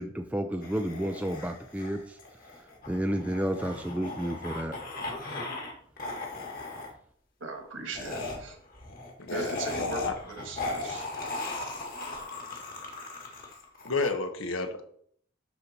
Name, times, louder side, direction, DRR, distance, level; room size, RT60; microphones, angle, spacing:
voice 1, 0.0-2.2 2.6-4.8, equal, 5° right, 5 dB, 0.4 m, -31 dB
sound 1, 0.6-5.7 6.0-6.9 7.9-14.1, left 2 dB, 45° left, 1.9 m, -37 dB
voice 2, 7.4-8.6 9.3-11.1, right 3 dB, 70° right, 4 dB, 1.8 m, -39 dB
voice 3, 9.2-10.1 13.8-14.8, left 3 dB, 75° left, 6 dB, 1.2 m, -31 dB
12.0 x 4.1 x 4.4 m, 0.63 s
head